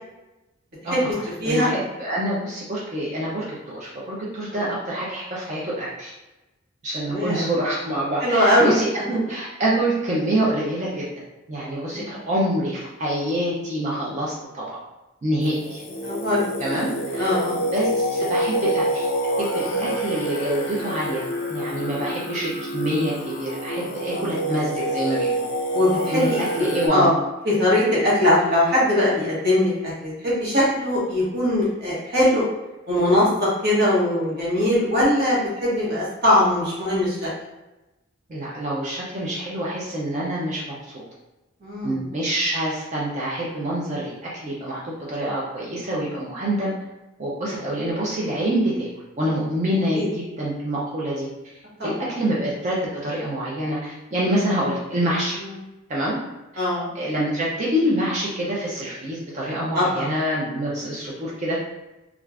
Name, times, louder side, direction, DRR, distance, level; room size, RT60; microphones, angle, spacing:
voice 1, 0.8-6.1 6.8-11.2 11.5-14.8 15.2-15.8 16.6-17.3 17.7-19.1 19.4-25.4 26.1-27.1 38.3-40.6 40.9-41.0 41.8-46.7 47.2-48.9 49.2-51.3 51.8-55.4 55.9-56.2 56.9-61.6, right 1 dB, 35° right, -5 dB, 0.5 m, -26 dB
voice 2, 1.4-1.7 4.5-4.6 7.0-7.5 8.2-8.7 11.9-12.1 16.0-16.4 16.7-16.8 17.2-17.6 19.6-19.9 24.1-24.2 25.7-26.7 26.9-27.1 27.4-32.4 32.9-37.3 41.6-42.0 49.9-50.1 51.8-51.9 56.6-56.9 59.7-60.1, left 1 dB, 50° right, -7 dB, 1.2 m, -21 dB
Singing, 15.4-26.9, equal, 50° left, 0.6 m, -27 dB
2.4 x 2.3 x 3.3 m, 1.0 s
head